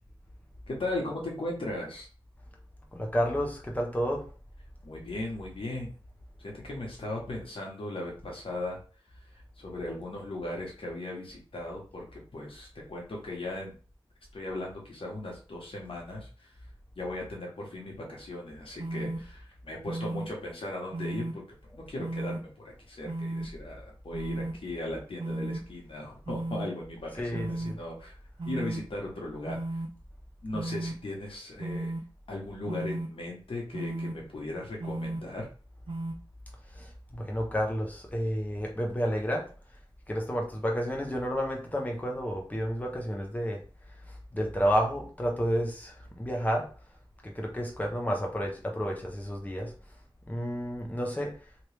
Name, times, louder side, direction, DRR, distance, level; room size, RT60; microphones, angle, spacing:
voice 1, 0.7-2.1 4.8-5.9 6.4-8.8 9.6-13.7 14.3-16.5 16.9-21.4 21.7-28.1 28.5-29.8 30.4-31.9 32.3-35.5, left 1 dB, 65° left, -1 dB, 1.2 m, -37 dB
voice 2, 2.9-4.3 27.2-27.8 36.7-39.5 40.1-43.6 44.1-46.7 47.2-49.7 50.3-51.4, equal, 15° left, 1 dB, 0.8 m, -31 dB
sound 1, 18.8-19.2 19.8-20.3 20.9-21.3 22.0-22.4 23.0-23.5 24.1-24.5 25.2-25.6 26.2-26.7 27.3-27.7 28.4-28.8 29.5-29.9 30.5-30.9 31.6-32.0 32.7-33.1 33.7-34.1 34.8-35.2 35.9-36.1, right 2 dB, 60° right, 0.7 m, -34 dB
2.9 x 2.5 x 3.3 m, 0.38 s
cardioid pair, 45°, 10 cm